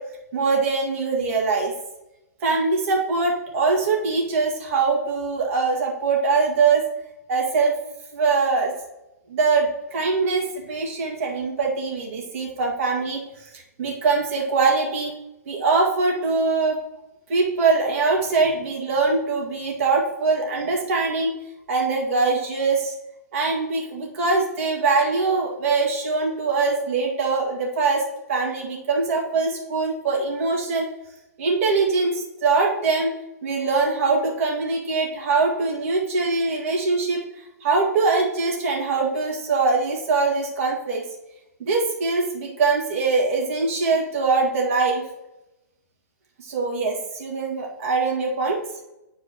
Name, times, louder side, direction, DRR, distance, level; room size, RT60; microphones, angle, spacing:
voice 1, 0.3-1.7 2.4-6.8 7.3-7.7 8.1-8.7 9.3-15.1 15.5-16.8 17.3-21.3 21.7-22.9 23.3-28.0 28.3-30.8 31.4-33.1 33.4-37.2 37.6-41.0 41.6-45.0 46.4-48.6, right 4 dB, 55° right, 0 dB, 1.9 m, -22 dB
9.2 x 4.6 x 2.9 m, 0.94 s
hypercardioid pair, 120°, 9 cm